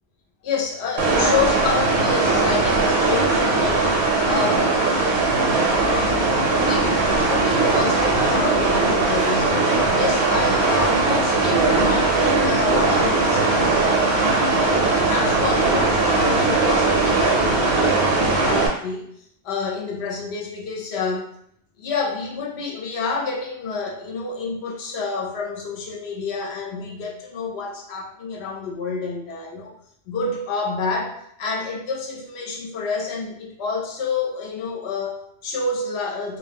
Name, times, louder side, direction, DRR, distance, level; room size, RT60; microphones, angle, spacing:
voice 1, 0.4-4.7 5.7-14.2 14.5-19.1 19.4-21.3 21.8-29.7 30.1-36.4, left 4 dB, 70° left, -1 dB, 0.8 m, -28 dB
sound 1, 1.0-18.7, right 3 dB, 70° right, 0.8 m, -19 dB
2.2 x 2.1 x 3.3 m, 0.69 s
omnidirectional pair, 1.2 m